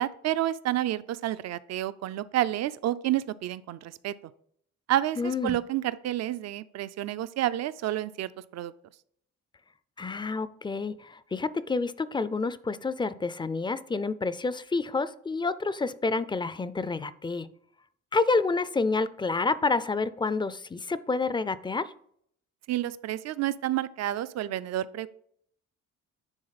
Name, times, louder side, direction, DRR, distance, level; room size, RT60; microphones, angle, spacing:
voice 1, 0.0-4.1 4.9-8.7 22.7-25.1, right 13 dB, 60° right, 16 dB, 0.4 m, -29 dB
voice 2, 5.2-5.6 10.0-17.5 18.1-21.9, left 3 dB, 15° left, 15 dB, 0.4 m, -29 dB
9.8 x 3.6 x 4.0 m, 0.66 s
cardioid pair, 90°, 30 cm